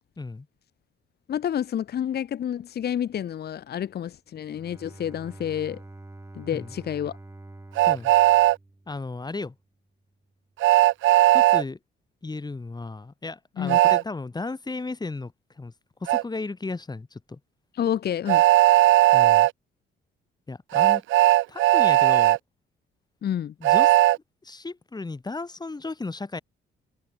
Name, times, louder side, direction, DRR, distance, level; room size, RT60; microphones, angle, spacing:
voice 1, 1.3-5.8 6.3-7.1 13.6-13.8 17.7-18.4 23.2-23.5, left 9 dB, 55° left, 1.0 m, -29 dB
Bowed string instrument, 4.4-9.4, right 2 dB, 15° right, 3.9 m, -46 dB
Train, 7.8-8.6 10.6-11.6 13.7-14.0 16.1-16.2 18.3-19.5 20.7-22.4 23.6-24.2, right 16 dB, 75° right, 0.5 m, -17 dB
voice 2, 8.9-9.6 11.3-11.8 12.2-15.7 16.0-17.4 19.1-19.5 20.5-21.0 21.5-22.4 23.6-23.9 24.4-26.4, left 3 dB, 20° left, 2.0 m, -34 dB
cardioid pair, 90°, 20 cm